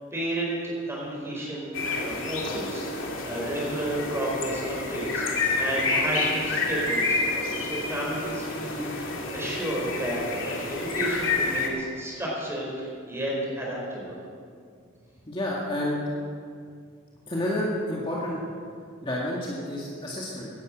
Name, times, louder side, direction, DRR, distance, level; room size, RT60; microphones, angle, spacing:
voice 1, 0.1-14.2, right 1 dB, 15° right, -4 dB, 4.8 m, -32 dB
sound 1, 1.7-11.7, left 3 dB, 85° left, 2.3 m, -29 dB
voice 2, 15.3-16.0 17.3-18.4 19.0-20.5, left 1 dB, 25° left, -4 dB, 2.0 m, -29 dB
16.5 x 11.0 x 6.5 m, 2.2 s
head